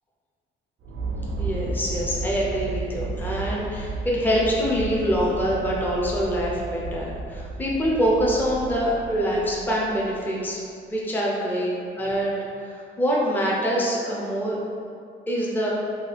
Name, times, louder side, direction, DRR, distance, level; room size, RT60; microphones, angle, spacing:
sound 1, 0.8-10.4, right 3 dB, 80° right, 0.5 m, -33 dB
voice 1, 1.4-10.6 10.9-11.7 12.0-12.3 12.6-14.6 15.3-15.7, equal, 10° left, -4 dB, 0.6 m, -25 dB
2.8 x 2.7 x 3.2 m, 2.4 s
cardioid pair, 90°, 20 cm